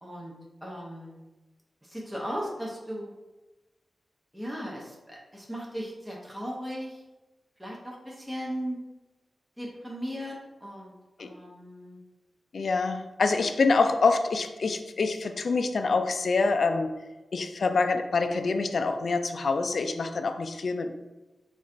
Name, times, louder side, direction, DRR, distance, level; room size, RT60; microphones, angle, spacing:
voice 1, 0.0-0.3 0.6-1.2 1.8-3.1 4.3-7.0 7.6-8.8 9.6-10.9 11.2-12.0, equal, 10° right, -3 dB, 0.7 m, -37 dB
voice 2, 12.5-16.9 17.3-20.9, left 4 dB, 65° left, 7 dB, 0.3 m, -26 dB
3.9 x 2.5 x 4.3 m, 1.1 s
wide cardioid pair, 130°, 0 cm